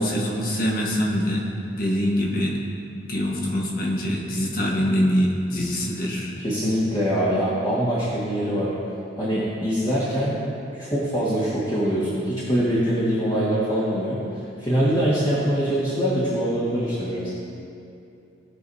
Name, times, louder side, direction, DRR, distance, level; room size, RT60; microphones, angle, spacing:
voice 1, 0.0-1.4 1.7-2.5 3.0-6.3, equal, 50° left, -2 dB, 1.4 m, -24 dB
voice 2, 6.4-8.7 9.2-10.3 10.7-14.2 14.6-17.3, equal, 25° left, -9 dB, 1.7 m, -23 dB
18.5 x 6.3 x 2.7 m, 2.6 s
head